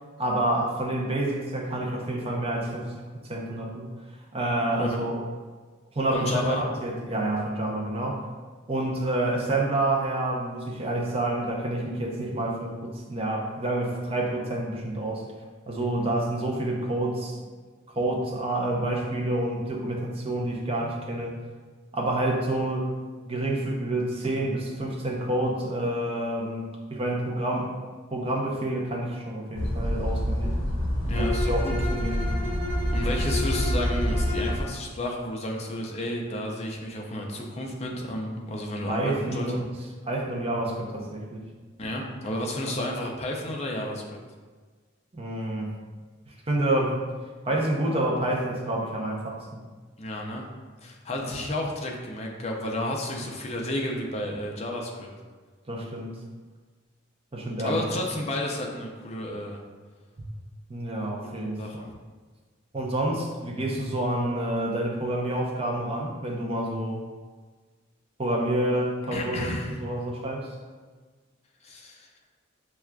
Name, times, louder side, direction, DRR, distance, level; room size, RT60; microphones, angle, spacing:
voice 1, 0.2-2.9 3.3-3.9 4.3-5.2 5.9-8.3 8.7-15.3 15.7-17.4 17.9-21.4 21.9-22.9 23.3-27.8 28.1-30.5 31.2-32.3 38.9-39.6 40.1-41.4 45.1-45.7 46.3-47.1 47.4-49.6 51.2-51.3 55.7-56.2 57.3-57.8 60.7-61.8 62.7-67.0 68.2-69.5 69.8-70.5, right 1 dB, 30° right, -1 dB, 0.5 m, -28 dB
voice 2, 6.1-6.6 31.1-31.8 32.9-39.5 41.8-44.2 50.0-50.4 50.8-55.1 57.6-59.6 61.6-61.9 69.1-69.8 71.6-72.1, left 1 dB, 30° left, 0 dB, 0.4 m, -31 dB
sound 1, 29.5-34.6, equal, 70° left, 0.7 m, -27 dB
Bowed string instrument, 31.1-34.7, left 2 dB, 80° right, 0.7 m, -34 dB
5.9 x 2.3 x 2.2 m, 1.4 s
head